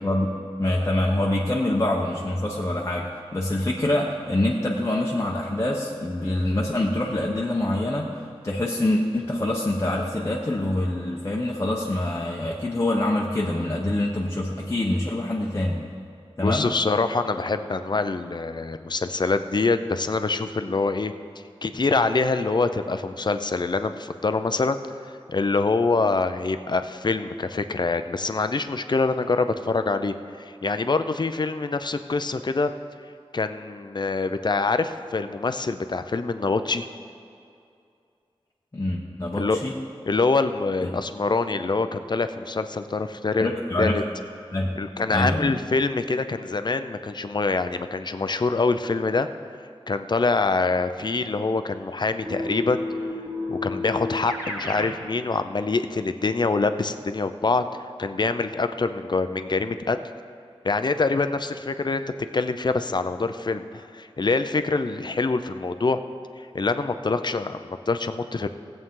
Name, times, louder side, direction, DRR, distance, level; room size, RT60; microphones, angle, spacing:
voice 1, 0.0-0.3 0.6-8.1 8.4-15.8 16.4-16.7 38.7-39.8 40.8-40.9 43.4-44.0 44.5-44.8 45.1-45.6, left 1 dB, 30° left, -3 dB, 0.9 m, -25 dB
voice 2, 16.4-21.1 21.6-24.8 25.3-32.7 33.3-36.9 39.4-39.6 40.1-43.5 43.8-44.0 44.8-49.3 49.9-52.8 53.5-60.0 60.6-62.0 62.3-66.0 66.5-68.5, left 3 dB, 45° left, 10 dB, 0.5 m, -25 dB
Keyboard (musical), 52.3-55.0, left 2 dB, 25° right, 2.4 m, -31 dB
17.0 x 7.9 x 3.7 m, 2.4 s
wide cardioid pair, 85°, 10 cm